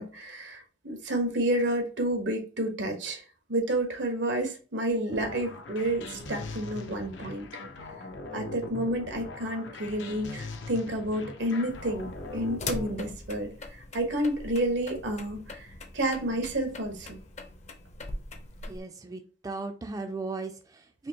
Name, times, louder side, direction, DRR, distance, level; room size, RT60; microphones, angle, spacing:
voice 1, 0.0-3.2 3.5-7.5 8.3-17.2, right 1 dB, 85° right, 1.1 m, -30 dB
sound 1, 5.1-13.1, left 2 dB, 80° left, 0.6 m, -41 dB
sound 2, 11.7-18.8, left 2 dB, 40° left, 0.6 m, -41 dB
voice 2, 18.7-21.1, right 3 dB, 20° right, 0.3 m, -37 dB
4.4 x 2.9 x 2.8 m
head